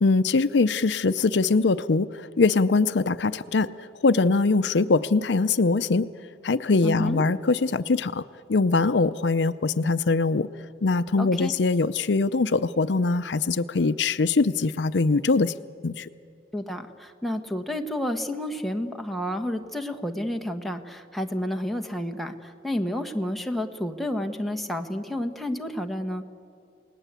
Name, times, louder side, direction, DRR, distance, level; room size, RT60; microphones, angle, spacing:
voice 1, 0.0-6.1 6.4-8.2 8.5-10.5 10.8-15.5 15.8-16.1, left 3 dB, 75° left, 13 dB, 0.6 m, -22 dB
voice 2, 6.8-7.2 11.2-11.5 16.5-26.2, left 1 dB, ahead, 4 dB, 1.3 m, -30 dB
29.0 x 19.0 x 8.2 m, 2.4 s
head